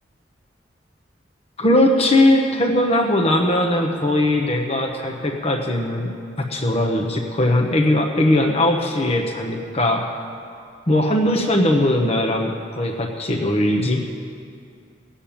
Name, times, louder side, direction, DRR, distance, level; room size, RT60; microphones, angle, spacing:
voice 1, 1.6-6.1 6.4-10.0 10.9-14.0, left 1 dB, 35° left, 2 dB, 1.0 m, -19 dB
17.0 x 7.4 x 8.7 m, 2.3 s
head